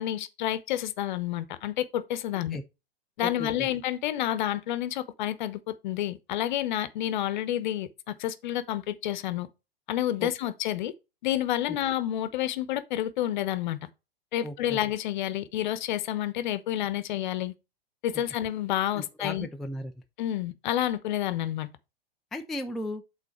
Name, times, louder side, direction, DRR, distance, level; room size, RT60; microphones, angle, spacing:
voice 1, 0.0-2.6 3.2-9.5 9.9-10.9 11.2-13.9 14.3-17.5 18.0-19.5 20.2-21.7, left 12 dB, 50° left, 0.9 m, -29 dB
voice 2, 3.2-3.7 10.2-10.3 11.7-11.8 14.4-14.8 19.0-19.9 22.3-23.0, left 1 dB, ahead, 0.3 m, -36 dB
8.3 x 4.1 x 4.3 m
figure-of-eight pair, 100°, 30 cm